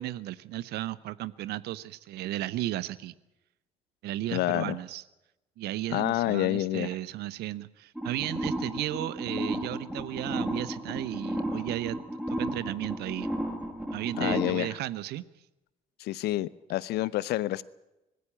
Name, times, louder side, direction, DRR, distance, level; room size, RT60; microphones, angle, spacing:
voice 1, 0.0-3.1 4.0-5.0 5.6-12.0 12.3-13.3 13.9-15.2, right 14 dB, 65° right, 0.8 m, -34 dB
voice 2, 4.3-4.8 5.9-7.0 14.2-14.7 16.0-17.6, left 16 dB, 65° left, 0.7 m, -28 dB
sound 1, 8.0-14.6, equal, 5° right, 5.2 m, -33 dB
20.0 x 16.5 x 8.7 m
figure-of-eight pair, 45°, 18 cm